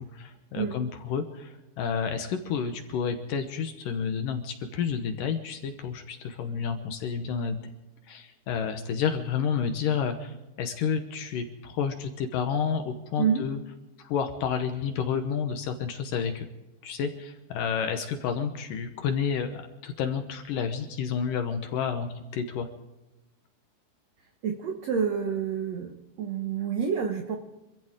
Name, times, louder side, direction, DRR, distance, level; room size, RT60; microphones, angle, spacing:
voice 1, 0.0-7.6 8.1-13.6 14.0-16.5 16.8-22.7, left 7 dB, 70° left, 7 dB, 2.3 m, -30 dB
voice 2, 24.4-25.9 26.2-27.4, right 7 dB, 75° right, 4 dB, 1.5 m, -28 dB
25.5 x 15.0 x 3.7 m, 0.98 s
omnidirectional pair, 4.8 m